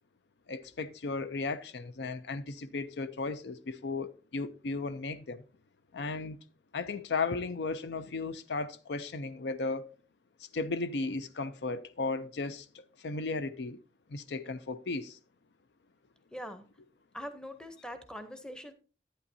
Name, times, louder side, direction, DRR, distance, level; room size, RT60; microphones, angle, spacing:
voice 1, 0.5-5.4 5.9-6.4 6.7-9.9 10.5-13.8 14.1-15.2, left 3 dB, 75° left, 0.5 m, -35 dB
voice 2, 16.3-16.6 17.1-18.7, equal, 5° left, 0.7 m, -42 dB
11.0 x 8.9 x 2.7 m
head